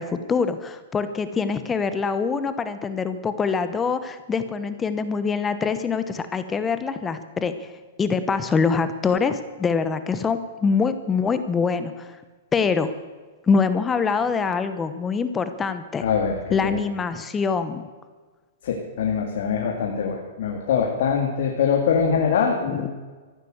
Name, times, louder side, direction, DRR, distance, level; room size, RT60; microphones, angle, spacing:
voice 1, 0.0-7.7 8.0-12.2 12.5-12.9 13.5-16.0 16.5-17.8 22.7-22.9, left 5 dB, 15° left, 11 dB, 0.9 m, -24 dB
voice 2, 16.0-16.8 18.6-22.9, left 6 dB, 65° left, 1 dB, 2.6 m, -23 dB
15.0 x 12.0 x 8.0 m, 1.4 s
hypercardioid pair, 155°, 0 cm